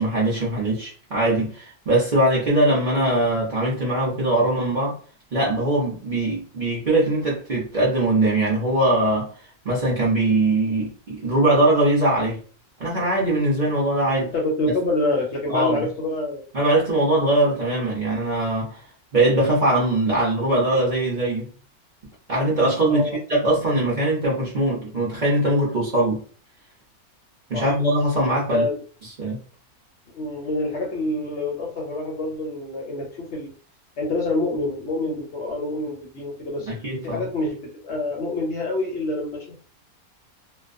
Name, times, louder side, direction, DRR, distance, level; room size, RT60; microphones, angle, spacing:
voice 1, 0.0-5.0 5.3-9.3 9.6-12.4 12.8-14.3 15.5-15.8 16.5-18.8 19.1-21.5 22.3-26.2 27.5-28.7 29.2-29.4 36.7-37.2, right 1 dB, 45° right, -5 dB, 0.7 m, -21 dB
voice 2, 14.3-16.4 22.9-23.2 27.5-27.6 28.5-28.7 30.1-33.5 34.0-36.8 37.0-37.6 37.8-39.6, left 2 dB, 60° left, -1 dB, 0.8 m, -26 dB
2.4 x 2.2 x 2.4 m, 0.41 s
omnidirectional pair, 1.5 m